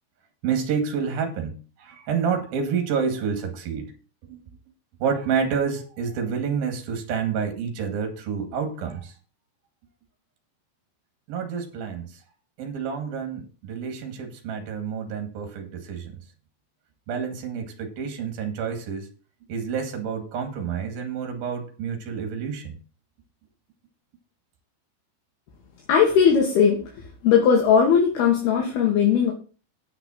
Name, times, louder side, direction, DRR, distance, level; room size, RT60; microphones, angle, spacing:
voice 1, 0.4-3.9 4.3-4.4 5.0-9.1 11.3-12.1 12.6-16.2 17.1-19.1 19.5-22.8, right 6 dB, 60° right, 5 dB, 3.8 m, -28 dB
voice 2, 25.9-26.8 27.2-29.3, left 7 dB, 65° left, 1 dB, 3.5 m, -18 dB
9.8 x 6.0 x 7.3 m, 0.37 s
omnidirectional pair, 5.2 m